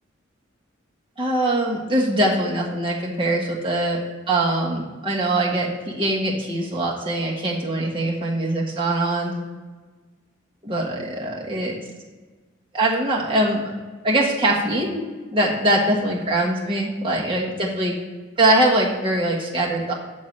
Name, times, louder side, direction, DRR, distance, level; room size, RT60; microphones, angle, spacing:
voice 1, 1.2-4.0 4.3-9.3 10.6-11.8 12.7-13.7 14.0-17.9 18.4-19.9, right 1 dB, 25° right, -3 dB, 1.3 m, -22 dB
8.6 x 3.8 x 6.3 m, 1.3 s
head